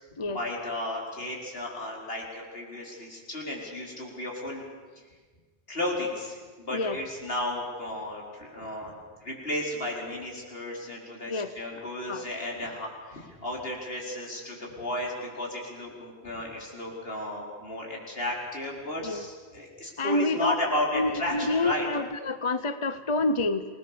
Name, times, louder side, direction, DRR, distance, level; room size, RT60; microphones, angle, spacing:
voice 1, 0.2-4.6 5.7-8.9 9.2-21.8, left 1 dB, 65° left, -1 dB, 5.1 m, -34 dB
voice 2, 20.0-20.5 20.9-23.7, left 2 dB, 30° left, 11 dB, 0.8 m, -27 dB
28.0 x 20.0 x 7.0 m, 1.5 s
omnidirectional pair, 1.1 m